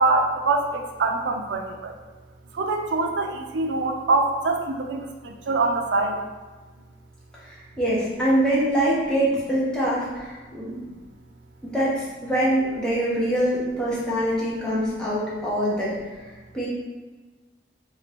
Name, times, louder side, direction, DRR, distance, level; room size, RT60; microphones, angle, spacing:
voice 1, 0.0-2.0 2.5-6.2, right 3 dB, 75° right, 4 dB, 0.4 m, -24 dB
voice 2, 7.4-10.8 11.6-15.9 16.5-16.7, right 1 dB, 5° left, -8 dB, 0.8 m, -24 dB
3.2 x 2.6 x 3.3 m, 1.3 s
head